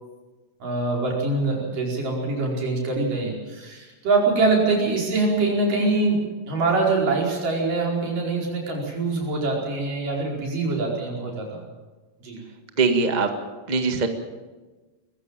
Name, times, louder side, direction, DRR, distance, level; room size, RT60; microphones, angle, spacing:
voice 1, 0.6-11.6 12.2-12.4, right 3 dB, 75° right, -1 dB, 6.5 m, -24 dB
voice 2, 12.8-13.3 13.7-14.1, right 4 dB, 25° right, 6 dB, 0.9 m, -21 dB
21.5 x 15.0 x 9.1 m, 1.2 s
omnidirectional pair, 3.8 m